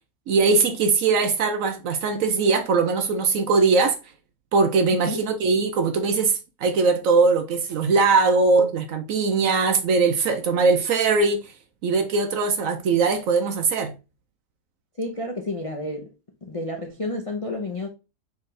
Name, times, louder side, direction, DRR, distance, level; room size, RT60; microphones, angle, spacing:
voice 1, 0.3-4.0 4.5-11.5 11.8-13.9, right 4 dB, 65° right, 0.9 m, -21 dB
voice 2, 15.0-16.1 16.4-17.9, left 2 dB, 50° left, 0.4 m, -30 dB
4.5 x 3.4 x 3.2 m
omnidirectional pair, 1.8 m